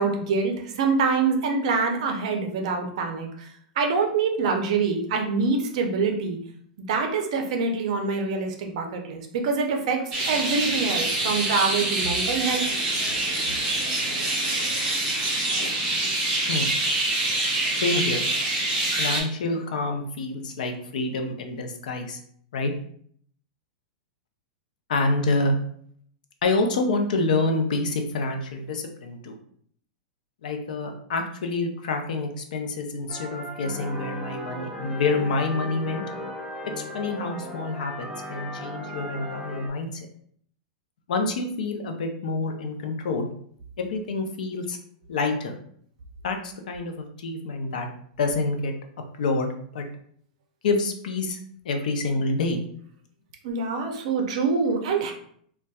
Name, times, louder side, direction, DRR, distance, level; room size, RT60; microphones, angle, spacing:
voice 1, 0.0-3.5 3.8-6.4 6.9-12.7 53.4-55.1, right 4 dB, 50° right, 4 dB, 0.6 m, -25 dB
sound 1, 10.1-19.2, right 2 dB, 25° right, 1.1 m, -25 dB
voice 2, 17.8-18.2 19.0-22.2 22.5-22.7 24.9-25.6 26.4-29.4 30.4-36.0 36.6-40.1 41.1-43.3 43.8-44.8 45.1-45.6 46.2-47.9 48.2-48.7 49.2-49.8 50.6-51.4 51.6-52.6, left 3 dB, 75° left, 4 dB, 0.6 m, -27 dB
sound 2, 33.1-39.7, left 1 dB, ahead, 0.3 m, -36 dB
4.0 x 2.2 x 2.3 m, 0.62 s
supercardioid pair, 170°, 4 cm